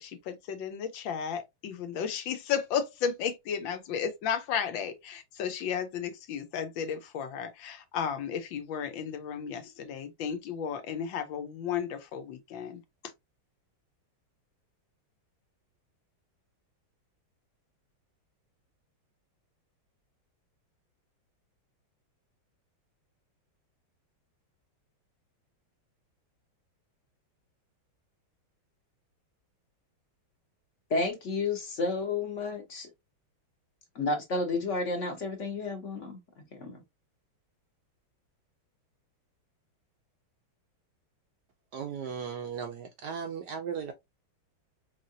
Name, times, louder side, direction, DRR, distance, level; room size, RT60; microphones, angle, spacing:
voice 1, 0.0-12.8, left 7 dB, 75° left, 1.4 m, -34 dB
voice 2, 30.9-32.9 33.9-36.2 36.5-36.8, left 3 dB, 45° left, 1.1 m, -31 dB
voice 3, 41.7-43.9, right 7 dB, 70° right, 1.0 m, -36 dB
4.6 x 3.3 x 2.6 m
omnidirectional pair, 2.2 m